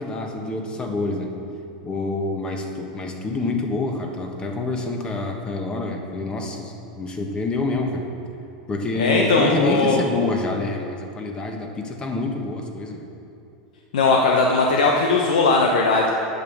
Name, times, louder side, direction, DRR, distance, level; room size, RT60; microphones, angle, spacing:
voice 1, 0.0-1.3 1.8-8.0 8.7-13.1, left 3 dB, 25° left, 3 dB, 1.3 m, -27 dB
voice 2, 9.0-10.0 13.9-16.1, left 3 dB, 85° left, 0 dB, 0.9 m, -18 dB
8.8 x 6.5 x 7.2 m, 2.7 s
supercardioid pair, 120°, 4 cm